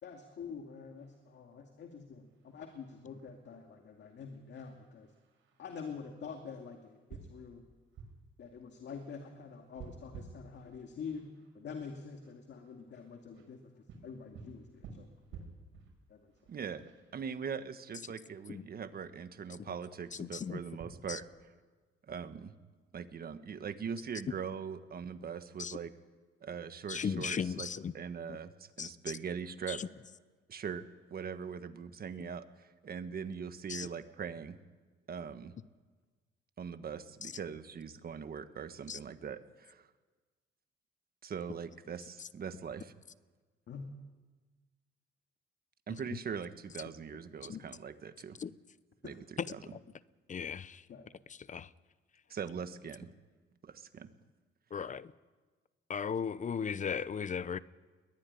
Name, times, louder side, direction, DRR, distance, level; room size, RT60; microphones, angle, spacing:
voice 1, 0.0-5.1 5.6-7.6 8.4-11.3 11.5-15.1 15.3-15.5 16.1-16.3 43.7-43.8 49.0-49.2 50.9-51.1 52.2-52.3, left 5 dB, 65° left, 4 dB, 2.4 m, -46 dB
sound 1, 1.0-20.9, right 5 dB, 80° right, 6.4 m, -56 dB
voice 2, 16.5-21.2 22.1-22.5 22.9-25.9 26.4-27.7 27.9-29.8 30.5-30.8 31.1-34.6 35.1-35.5 36.6-39.9 41.2-42.9 45.9-48.4 49.0-49.6 52.3-53.1 53.6-54.1, right 6 dB, 50° right, 10 dB, 1.5 m, -41 dB
voice 3, 20.2-20.6 21.1-21.2 25.6-25.8 26.9-27.9 28.8-28.9 29.7-29.9 33.7-33.9 38.9-39.0 47.5-47.6 48.4-48.5 49.7-49.8 50.3-50.8 51.5-51.7 54.7-55.1 55.9-57.6, left 6 dB, 40° left, 17 dB, 0.8 m, -36 dB
22.0 x 14.0 x 10.0 m, 1.3 s
cardioid pair, 90°, 20 cm